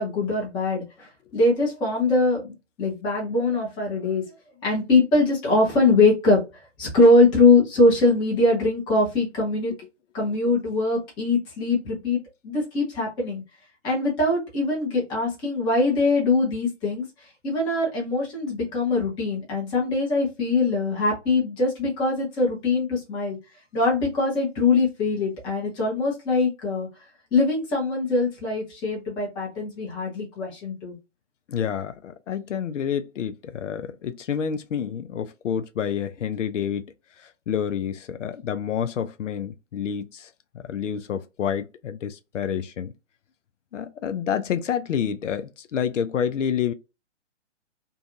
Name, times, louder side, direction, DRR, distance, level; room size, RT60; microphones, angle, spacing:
voice 1, 0.0-2.5 2.8-4.3 4.6-6.4 6.8-9.7 10.1-13.4 13.8-17.0 17.4-23.4 23.7-26.9 27.3-31.0, left 2 dB, 10° left, 0.8 m, -22 dB
voice 2, 31.5-36.9 37.2-40.3 40.6-42.9 43.7-46.7, left 8 dB, 85° left, 0.5 m, -28 dB
2.6 x 2.3 x 2.5 m
hypercardioid pair, 145°, 36 cm